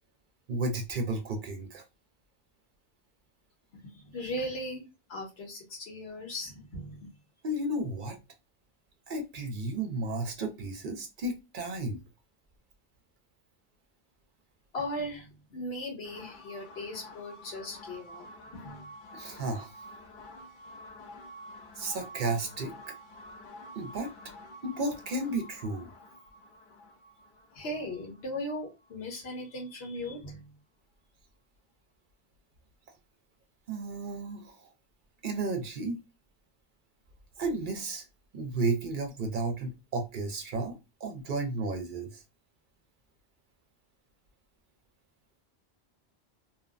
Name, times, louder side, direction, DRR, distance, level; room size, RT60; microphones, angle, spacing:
voice 1, 0.5-1.8 7.4-8.2 9.1-12.0 19.1-19.7 21.8-22.9 23.7-24.1 24.6-25.9 33.7-34.7 35.2-36.0 37.4-38.1 38.3-42.2, right 2 dB, 60° right, 0.6 m, -33 dB
voice 2, 3.7-7.1 14.7-18.3 18.5-18.9 27.5-30.5, left 1 dB, 75° left, 1.2 m, -38 dB
sound 1, 16.0-29.7, left 1 dB, 60° left, 0.6 m, -49 dB
2.7 x 2.1 x 2.4 m
omnidirectional pair, 1.1 m